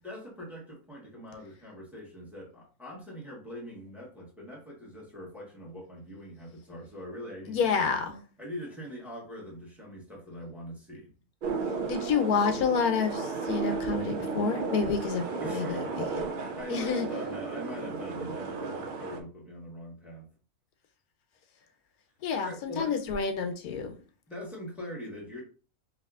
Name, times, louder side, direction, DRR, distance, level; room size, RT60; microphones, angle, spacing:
voice 1, 0.0-7.9 8.4-11.1 15.4-16.2 16.6-20.3 22.4-22.9 24.3-25.4, equal, ahead, 1.1 m, -42 dB
voice 2, 7.5-8.2 11.9-15.8 16.7-17.1 22.2-23.9, left 5 dB, 90° left, 1.1 m, -28 dB
sound 1, 11.4-19.2, right 4 dB, 70° right, 0.5 m, -34 dB
4.7 x 2.7 x 2.4 m
omnidirectional pair, 1.5 m